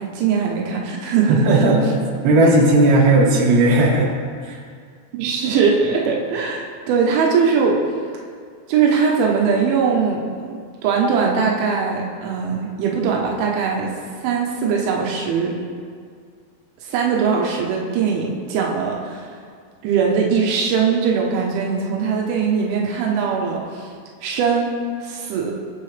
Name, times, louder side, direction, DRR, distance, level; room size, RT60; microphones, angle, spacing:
voice 1, 0.0-1.6 5.1-7.8 8.7-13.9 14.2-15.6 16.8-19.2 19.8-23.9 24.2-25.5, right 5 dB, 90° right, -1 dB, 3.6 m, -21 dB
voice 2, 1.3-1.9 2.2-4.1 4.4-4.6, right 2 dB, 70° right, -3 dB, 3.9 m, -15 dB
21.5 x 7.4 x 3.4 m, 2.1 s
omnidirectional pair, 5.3 m